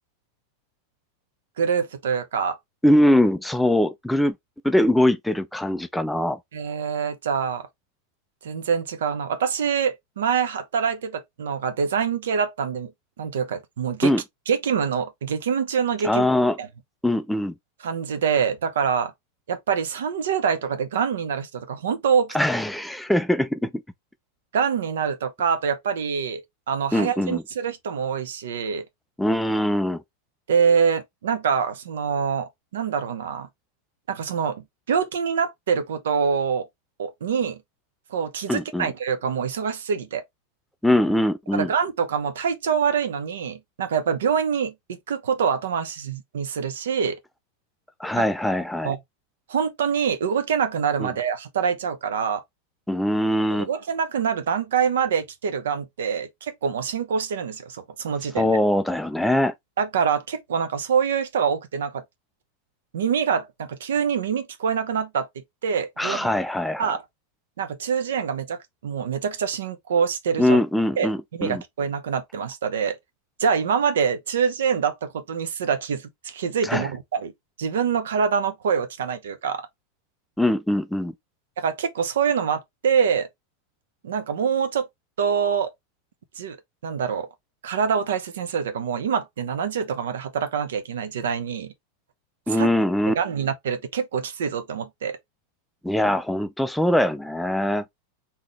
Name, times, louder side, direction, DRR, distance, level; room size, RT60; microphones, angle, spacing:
voice 1, 1.6-2.6 6.5-7.6 8.4-12.9 13.2-14.1 14.5-16.3 16.6-16.7 17.8-19.1 19.5-22.4 24.5-28.8 30.5-33.5 34.1-36.7 37.0-37.6 38.1-40.2 41.5-47.2 48.1-48.2 48.8-49.0 49.5-52.4 53.5-58.6 59.8-62.0 62.9-65.3 65.6-66.3 66.8-67.0 67.6-70.6 71.0-73.0 73.4-77.3 77.6-79.6 81.6-83.3 84.0-84.9 85.2-85.7 86.4-86.6 86.8-87.3 87.6-91.7 92.5-92.7 93.1-95.2, right 7 dB, 60° right, 0.7 m, -25 dB
voice 2, 2.8-4.3 4.6-6.4 14.0-14.2 16.0-16.6 17.0-17.5 22.3-23.8 26.9-27.4 29.2-30.0 38.5-38.9 40.8-41.7 48.0-48.9 51.0-51.1 52.9-53.7 58.4-59.5 66.0-67.0 70.4-71.6 76.6-76.9 80.4-81.1 92.5-93.1 95.8-97.8, left 1 dB, ahead, 0.4 m, -22 dB
3.7 x 2.8 x 3.3 m
figure-of-eight pair, 90°, 0 cm